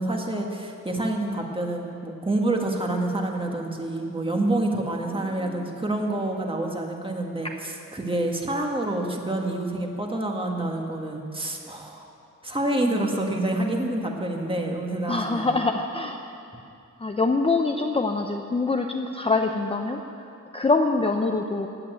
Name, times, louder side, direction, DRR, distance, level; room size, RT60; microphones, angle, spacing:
voice 1, 0.0-12.1 12.4-15.6, right 1 dB, 20° right, 1 dB, 1.6 m, -27 dB
voice 2, 5.0-5.7 7.4-7.5 15.1-16.3 17.0-21.7, left 3 dB, 20° left, 3 dB, 0.6 m, -25 dB
16.0 x 8.6 x 9.4 m, 2.6 s
wide cardioid pair, 155°, 29 cm